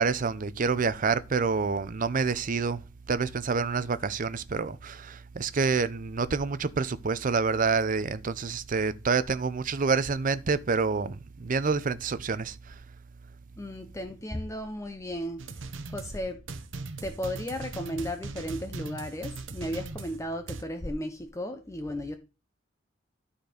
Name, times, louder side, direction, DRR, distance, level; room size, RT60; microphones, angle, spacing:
voice 1, 0.0-2.8 3.1-12.7, right 4 dB, 45° right, 0.5 m, -27 dB
voice 2, 13.6-16.4 17.0-22.2, equal, 15° left, 0.6 m, -35 dB
sound 1, 15.4-20.6, right 3 dB, 85° right, 0.9 m, -40 dB
12.0 x 4.3 x 5.0 m
head